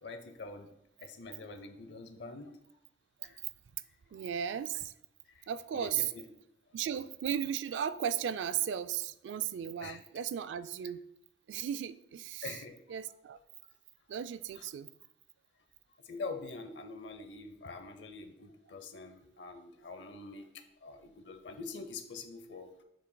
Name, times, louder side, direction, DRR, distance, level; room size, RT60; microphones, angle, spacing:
voice 1, 0.0-2.5 3.2-3.4 4.1-4.3 5.3-5.5 5.7-6.2 9.8-10.0 12.4-12.8 14.1-14.2 14.5-14.7 16.0-20.4 20.8-22.7, left 3 dB, 80° left, 8 dB, 0.6 m, -45 dB
voice 2, 4.1-4.9 5.5-6.1 6.7-11.0 11.5-12.5 12.9-13.4 14.1-14.9, right 9 dB, 90° right, 14 dB, 0.3 m, -35 dB
7.5 x 5.8 x 2.2 m, 0.80 s
head